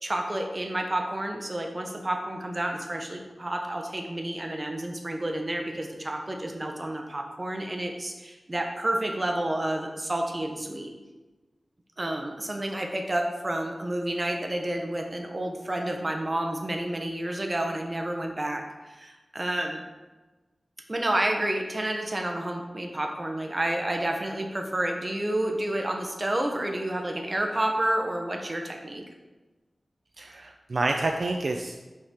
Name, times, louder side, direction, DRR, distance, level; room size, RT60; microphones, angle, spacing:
voice 1, 0.0-10.9 12.0-19.8 20.9-29.0, right 1 dB, 30° right, 3 dB, 0.9 m, -30 dB
voice 2, 30.2-31.8, right 2 dB, 60° right, 3 dB, 0.4 m, -28 dB
5.7 x 4.8 x 4.3 m, 1.2 s
wide cardioid pair, 100°, 0 cm